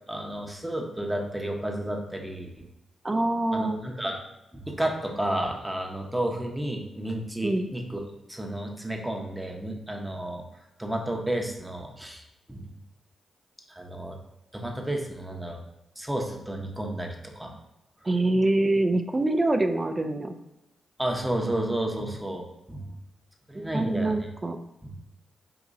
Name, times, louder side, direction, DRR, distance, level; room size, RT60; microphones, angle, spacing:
voice 1, 0.1-2.5 3.5-4.2 4.5-8.0 8.3-10.4 10.8-12.2 12.5-12.7 13.7-14.2 14.5-15.6 16.0-17.5 21.0-22.9 23.5-24.3 24.8-24.9, right 1 dB, 10° right, 1 dB, 0.8 m, -31 dB
voice 2, 3.0-3.8 7.4-7.7 18.1-20.3 23.5-24.6, right 2 dB, 30° right, 7 dB, 0.3 m, -25 dB
3.7 x 2.9 x 2.6 m, 0.92 s
hypercardioid pair, 40°, 0 cm